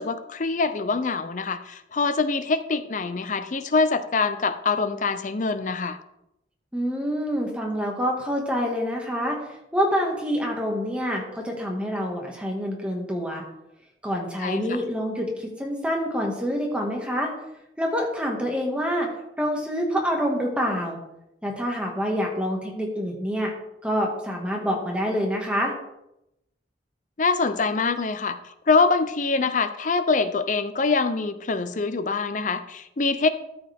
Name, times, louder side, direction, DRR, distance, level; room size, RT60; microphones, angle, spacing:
voice 1, 0.0-6.0 14.4-14.8 27.2-28.4 28.7-33.3, left 4 dB, 40° left, 11 dB, 0.6 m, -24 dB
voice 2, 6.7-9.4 9.7-13.4 14.0-17.3 17.8-19.1 19.4-21.0 21.4-23.5 23.8-25.7, equal, 5° right, 0 dB, 1.8 m, -26 dB
13.0 x 7.2 x 3.5 m, 0.85 s
head